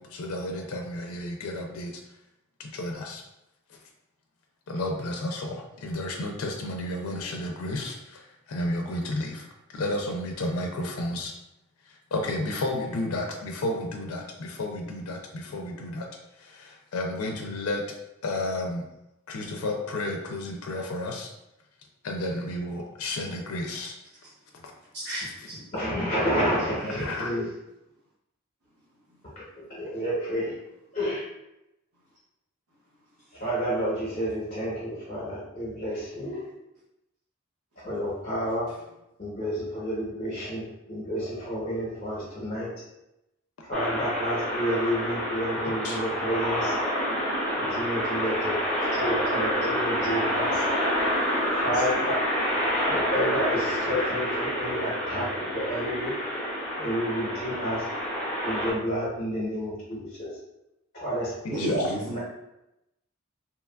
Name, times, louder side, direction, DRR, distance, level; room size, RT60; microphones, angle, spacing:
voice 1, 0.0-1.9 2.6-3.2 4.7-11.3 11.9-16.1 16.4-17.8 18.2-18.8 19.3-21.3 22.0-23.9 24.6-24.7 26.9-27.3 45.6-46.0 61.4-61.9, left 1 dB, 75° left, 2 dB, 0.4 m, -32 dB
voice 2, 24.9-25.6 26.9-27.2 50.9-51.6 61.5-62.1, equal, 85° right, -9 dB, 0.6 m, -35 dB
voice 3, 25.7-27.5 29.4-29.5 29.7-30.5 30.9-31.2 33.3-36.4 37.8-38.7 39.2-42.7 43.6-46.7 47.5-48.6 48.9-50.6 51.6-52.2 52.8-56.1 56.8-57.8 58.4-60.3 60.9-61.3 61.7-62.2, equal, 40° left, -6 dB, 0.7 m, -30 dB
sound 1, 43.7-58.7, equal, 5° left, 0.7 m, -28 dB
2.9 x 2.2 x 2.2 m, 0.90 s
head